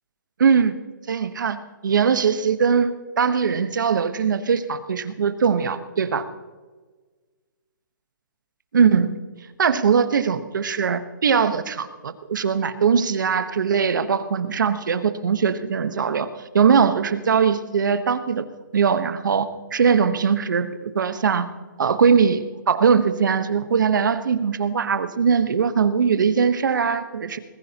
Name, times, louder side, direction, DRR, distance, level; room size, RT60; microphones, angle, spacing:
voice 1, 0.4-0.7 1.1-1.6 1.8-6.2 8.7-9.2 9.6-16.3 16.5-18.5 18.7-21.5 21.8-27.4, right 6 dB, 70° right, 11 dB, 1.2 m, -21 dB
21.0 x 15.0 x 2.9 m, 1.4 s
hypercardioid pair, 180°, 11 cm